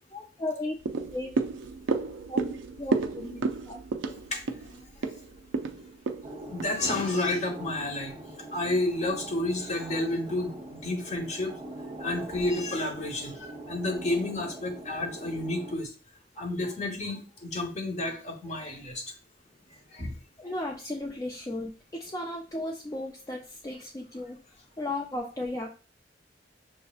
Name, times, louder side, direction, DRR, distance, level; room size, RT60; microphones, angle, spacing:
voice 1, 0.1-1.3 2.3-3.8 20.4-24.4 24.8-25.7, left 1 dB, 20° left, -1 dB, 0.4 m, -35 dB
sound 1, 0.8-7.3 7.7-7.8, right 4 dB, 85° right, 0.4 m, -32 dB
sound 2, 6.2-15.8, right 1 dB, 30° right, 0.6 m, -42 dB
voice 2, 6.5-8.1 8.5-11.5 12.0-15.9 16.4-19.0 19.9-20.1, left 2 dB, 40° left, 3 dB, 0.9 m, -30 dB
6.0 x 2.7 x 2.3 m, 0.35 s
head